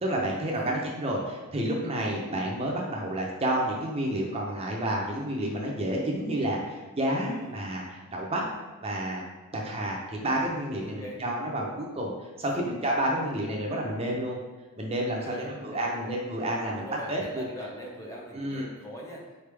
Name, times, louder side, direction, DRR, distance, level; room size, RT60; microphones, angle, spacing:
voice 1, 0.0-7.8 8.1-8.4 8.8-9.2 9.5-12.1 12.4-14.4 14.8-17.4 18.3-18.7, right 1 dB, 25° right, -2 dB, 0.6 m, -30 dB
voice 2, 7.2-7.6 10.8-11.2 12.6-12.7 15.2-16.1 16.6-19.3, equal, 15° left, -2 dB, 0.7 m, -42 dB
4.2 x 3.4 x 3.3 m, 1.3 s
head